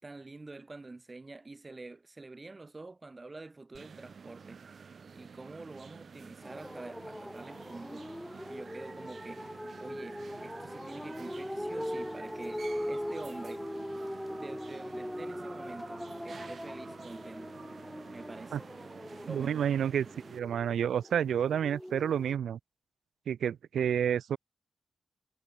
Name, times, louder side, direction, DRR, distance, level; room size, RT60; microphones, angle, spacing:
voice 1, 0.0-13.7 14.3-17.6 17.8-18.6 19.2-19.7, right 3 dB, 30° right, 6.9 m, -47 dB
sound 1, 3.7-20.4, right 5 dB, 60° right, 3.0 m, -50 dB
sound 2, 6.4-22.4, equal, 5° left, 3.5 m, -41 dB
voice 2, 19.3-20.1 20.3-22.6 23.3-24.4, right 9 dB, 80° right, 0.4 m, -29 dB
cardioid pair, 55°, 0 cm